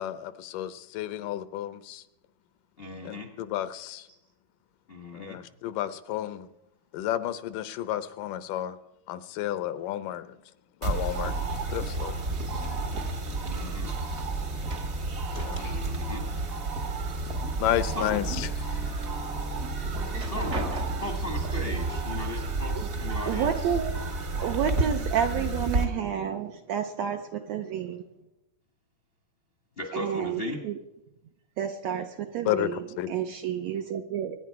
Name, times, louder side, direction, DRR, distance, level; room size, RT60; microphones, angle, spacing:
voice 1, 0.0-2.0 3.1-4.0 5.1-6.5 6.9-8.8 9.1-10.3 10.8-11.3 11.7-12.1 15.4-15.8 17.6-19.0 19.8-19.9 32.5-33.1, left 12 dB, 80° left, 13 dB, 2.2 m, -32 dB
voice 2, 2.8-3.3 4.1-4.2 4.9-5.4 13.4-13.9 15.5-16.2 17.8-18.2 20.1-23.7 29.8-30.6, left 2 dB, 40° left, 3 dB, 0.8 m, -37 dB
sound 1, 10.8-25.8, right 3 dB, 45° right, 1.1 m, -31 dB
sound 2, 14.6-16.1 16.4-17.4 17.8-18.6 19.1-19.2 19.9-21.3 22.3-22.4 22.8-23.4, right 1 dB, 60° right, 0.7 m, -39 dB
voice 3, 23.3-23.9 24.4-28.1 29.9-30.8 31.6-34.4, right 8 dB, 75° right, 6 dB, 1.7 m, -30 dB
24.5 x 10.0 x 4.7 m, 0.91 s
omnidirectional pair, 3.8 m